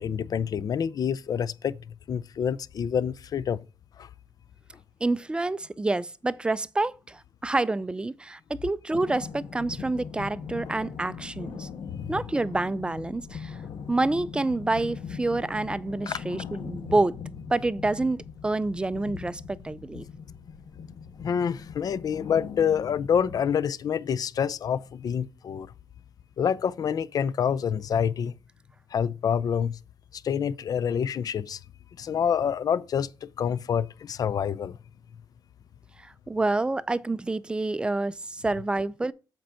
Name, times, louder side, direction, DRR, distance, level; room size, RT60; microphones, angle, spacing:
voice 1, 0.0-1.8 2.1-3.6 4.0-4.1 11.9-12.1 16.1-16.2 21.2-25.7 26.4-28.4 28.9-29.8 30.1-31.6 32.0-34.8, left 8 dB, 50° left, 0.5 m, -27 dB
voice 2, 5.0-11.7 12.1-13.6 13.9-17.1 17.5-18.2 18.4-20.0 36.3-39.1, right 2 dB, 10° right, 0.4 m, -28 dB
sound 1, 8.9-23.4, left 6 dB, 75° left, 1.2 m, -40 dB
7.7 x 4.4 x 5.5 m
wide cardioid pair, 140°, 8 cm